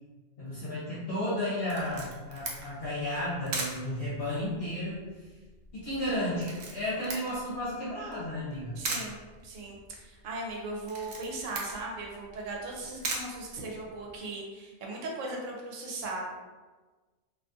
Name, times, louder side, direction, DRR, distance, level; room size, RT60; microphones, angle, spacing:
voice 1, 0.4-5.0 5.7-8.8, left 1 dB, 55° left, -10 dB, 0.9 m, -33 dB
Camera, 1.7-14.2, right 3 dB, 60° right, 0.6 m, -41 dB
voice 2, 8.8-16.2, right 2 dB, 80° right, -1 dB, 1.0 m, -38 dB
2.4 x 2.3 x 2.6 m, 1.3 s
omnidirectional pair, 1.3 m